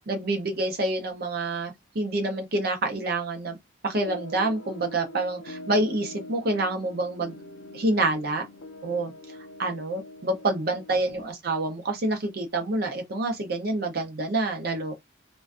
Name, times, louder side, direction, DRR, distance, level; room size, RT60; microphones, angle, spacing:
voice 1, 0.1-3.6 3.8-7.3 7.7-8.4 8.8-9.1 9.6-15.0, right 2 dB, 55° right, 0.6 m, -27 dB
sound 1, 3.9-11.1, left 1 dB, 80° left, 0.4 m, -43 dB
2.4 x 2.2 x 2.3 m
head